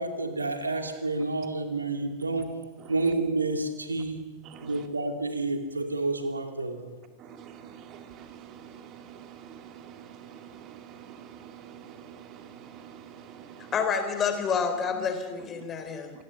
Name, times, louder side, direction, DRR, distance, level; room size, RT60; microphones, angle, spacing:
voice 1, 0.0-2.5 2.9-4.2 4.6-6.8, right 2 dB, 80° right, 5 dB, 2.4 m, -29 dB
voice 2, 4.4-4.9 7.2-13.7 16.1-16.2, right 9 dB, 35° right, 6 dB, 2.4 m, -47 dB
voice 3, 13.7-16.2, left 6 dB, 25° left, 7 dB, 3.7 m, -28 dB
27.0 x 18.5 x 6.0 m, 1.4 s
figure-of-eight pair, 90°, 0 cm